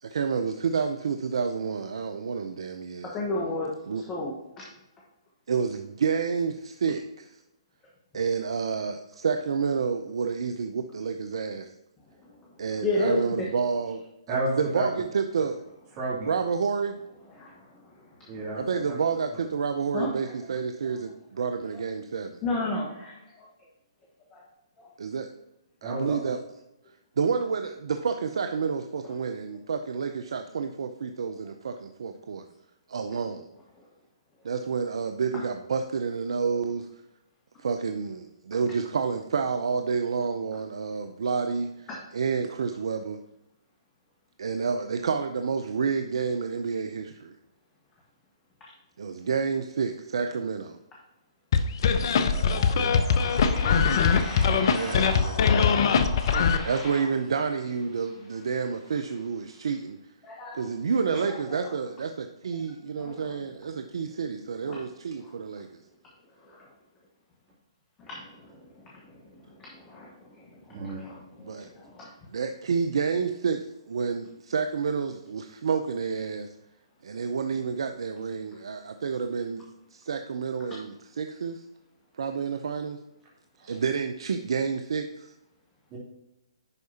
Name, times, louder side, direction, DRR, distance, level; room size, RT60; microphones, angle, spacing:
voice 1, 0.0-3.2 3.9-4.0 5.5-7.4 8.1-11.7 12.6-15.6 16.2-17.0 18.5-22.4 25.0-25.3 25.8-26.4 27.2-32.4 32.9-33.5 34.4-36.9 37.6-43.2 44.4-47.4 49.0-50.8 54.6-55.9 56.6-60.0 60.5-65.8 71.4-71.7 72.3-76.5 77.0-81.6 82.2-83.0 83.7-85.3, right 5 dB, 70° right, 7 dB, 0.5 m, -29 dB
voice 2, 3.1-3.7 4.1-4.6 12.8-13.2 17.4-17.6 19.9-20.1 22.4-23.5 24.3-24.4 24.8-24.9 41.9-42.0 52.9-57.1 60.2-60.6 61.1-61.7 63.0-63.3 64.7-64.8 66.5-66.7 68.0-68.7 69.3-70.1 70.7-72.1, left 2 dB, 20° left, -4 dB, 1.4 m, -34 dB
voice 3, 14.3-14.8 15.9-16.3 18.3-18.6 25.8-26.1 52.2-53.0 53.7-53.9 70.7-71.1 83.6-83.7 85.9-86.0, right 2 dB, 30° right, -7 dB, 2.8 m, -32 dB
sound 1, 51.5-56.6, left 6 dB, 55° left, 0.6 m, -22 dB
10.5 x 4.7 x 2.8 m, 0.91 s
hypercardioid pair, 135°, 3 cm